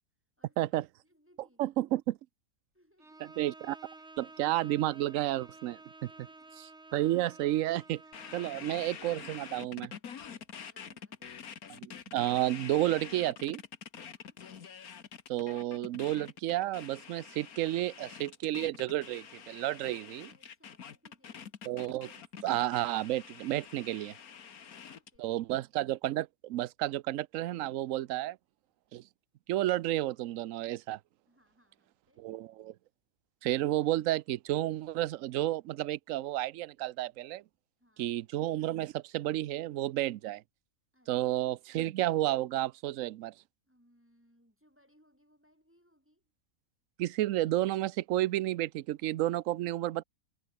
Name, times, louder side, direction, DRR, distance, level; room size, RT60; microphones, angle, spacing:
voice 1, 0.4-1.8 2.7-3.4 6.1-6.5 10.2-11.5 13.9-14.4 19.9-21.6 24.0-25.4 28.0-28.4 31.3-32.3 37.8-38.1 40.9-41.2 43.7-46.3, equal, 10° right, 5.8 m, -69 dB
voice 2, 1.6-2.2 3.4-3.8 4.2-5.8 6.9-8.0 8.3-9.9 11.8-13.6 15.3-20.3 21.7-22.1 22.4-24.1 25.2-28.4 28.9-29.0 29.5-31.0 32.2-32.7 33.4-37.4 38.0-40.4 41.1-43.3 47.0-50.0, right 15 dB, 70° right, 0.9 m, -31 dB
Bowed string instrument, 3.0-8.7, right 2 dB, 50° right, 4.2 m, -53 dB
sound 1, 8.1-25.2, left 7 dB, 85° left, 1.9 m, -47 dB
omnidirectional pair, 1.5 m